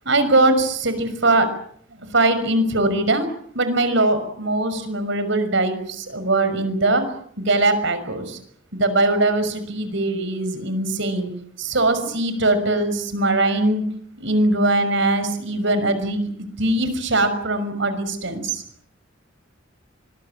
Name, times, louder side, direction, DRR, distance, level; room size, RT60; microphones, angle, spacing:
voice 1, 0.1-1.5 2.1-3.2 3.6-5.8 6.1-7.0 7.5-8.2 8.8-11.3 11.6-13.8 14.2-16.3 16.6-18.4, right 2 dB, 65° right, 11 dB, 6.1 m, -21 dB
25.5 x 22.0 x 8.9 m, 0.64 s
head